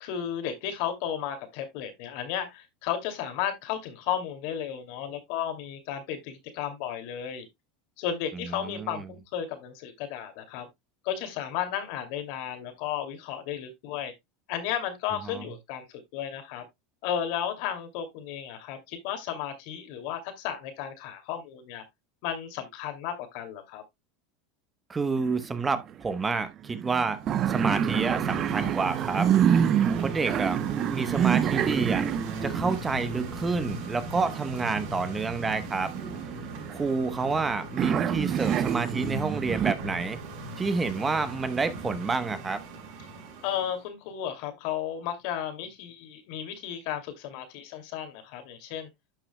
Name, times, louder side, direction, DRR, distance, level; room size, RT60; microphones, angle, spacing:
voice 1, 0.0-7.4 8.0-10.7 11.0-14.1 14.5-16.7 17.0-21.8 22.2-23.8 43.4-48.9, left 9 dB, 65° left, 2.4 m, -34 dB
voice 2, 8.6-9.0 15.2-15.4 24.9-27.2 27.5-29.3 30.0-30.6 30.9-32.0 32.4-35.9 36.7-40.2 40.6-42.6, right 4 dB, 20° right, 0.9 m, -29 dB
sound 1, 25.2-25.9 26.2-26.3 26.6-34.8 35.5-37.4 37.8-39.7, right 9 dB, 40° right, 0.6 m, -27 dB
sound 2, 27.2-43.8, right 2 dB, 60° right, 5.0 m, -39 dB
11.5 x 6.1 x 2.2 m
supercardioid pair, 120°, 0 cm